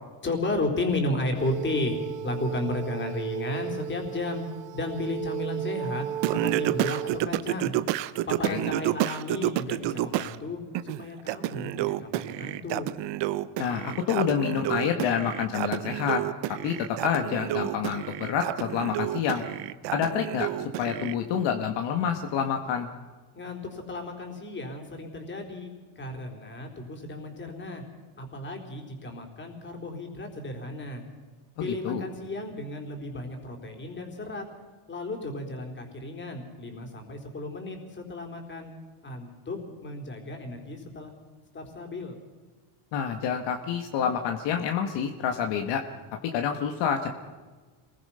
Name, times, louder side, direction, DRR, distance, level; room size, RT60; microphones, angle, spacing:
voice 1, 0.2-4.4 4.7-7.7 8.3-12.9 23.3-27.8 28.2-31.0 31.6-34.4 34.9-38.7 39.0-41.1 41.5-42.2, left 2 dB, 25° left, 3 dB, 4.2 m, -33 dB
sound 1, 1.3-7.2, right 12 dB, 80° right, 2.0 m, -35 dB
Singing, 6.2-10.4 10.7-21.1, right 14 dB, 60° right, 1.0 m, -30 dB
voice 2, 13.6-16.2 16.6-19.5 19.9-20.5 20.8-22.9 31.6-32.0 42.9-45.8 46.2-47.1, left 8 dB, 60° left, 4 dB, 1.9 m, -28 dB
27.0 x 21.0 x 5.8 m, 1.4 s
cardioid pair, 150°, 48 cm